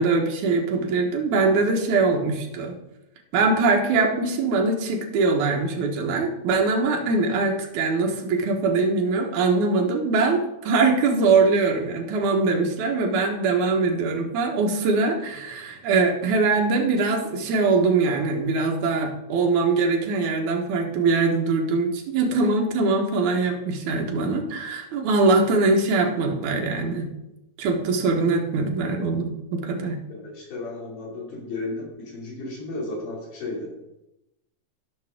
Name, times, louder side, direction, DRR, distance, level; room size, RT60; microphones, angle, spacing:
voice 1, 0.0-2.8 3.3-27.1 27.6-30.0, right 3 dB, 75° right, 1 dB, 2.7 m, -22 dB
voice 2, 30.1-33.7, left 2 dB, 85° left, -4 dB, 4.2 m, -34 dB
14.5 x 6.2 x 3.6 m, 0.92 s
omnidirectional pair, 3.5 m